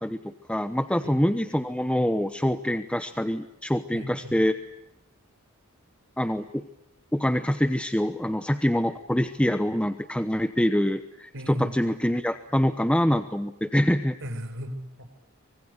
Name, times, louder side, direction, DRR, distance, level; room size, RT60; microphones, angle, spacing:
voice 1, 0.0-4.6 6.2-6.6 7.1-14.2, equal, 5° left, 9 dB, 0.9 m, -25 dB
voice 2, 3.9-4.4 11.3-11.8 14.2-15.1, equal, 60° right, 8 dB, 4.8 m, -36 dB
25.0 x 23.0 x 8.2 m, 0.87 s
head